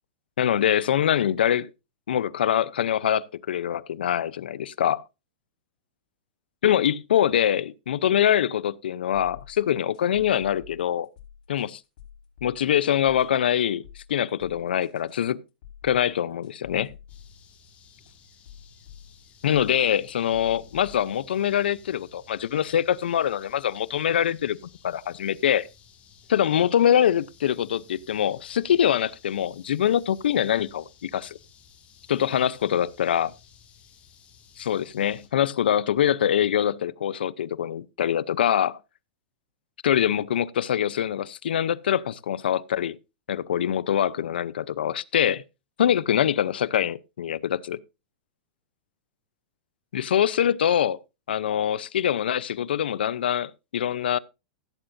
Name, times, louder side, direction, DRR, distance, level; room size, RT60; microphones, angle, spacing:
voice 1, 0.4-1.7 2.1-5.0 6.6-11.1 11.5-11.8 12.4-15.4 15.8-16.9 19.4-25.7 26.3-31.4 32.1-33.3 34.6-38.8 39.8-43.0 43.3-45.4 45.8-47.8 49.9-51.0 51.3-54.2, left 10 dB, 90° left, 0.6 m, -24 dB
sound 1, 9.1-22.0, left 9 dB, 60° left, 4.8 m, -49 dB
sound 2, 17.1-35.3, left 6 dB, 25° left, 3.2 m, -55 dB
16.0 x 8.8 x 2.6 m
supercardioid pair, 145°, 5 cm